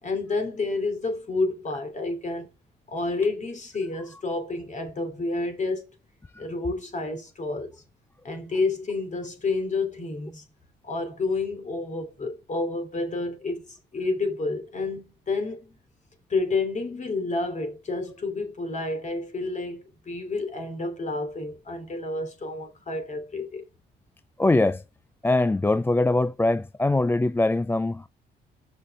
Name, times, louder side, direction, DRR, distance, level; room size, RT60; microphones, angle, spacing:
voice 1, 0.0-2.5 2.9-5.8 6.4-7.8 8.2-10.4 10.8-15.8 16.3-23.6, left 3 dB, 40° left, 3.0 m, -29 dB
voice 2, 24.4-24.8 25.2-28.1, left 2 dB, 10° left, 0.3 m, -22 dB
6.3 x 5.6 x 4.8 m
cardioid pair, 90°, 20 cm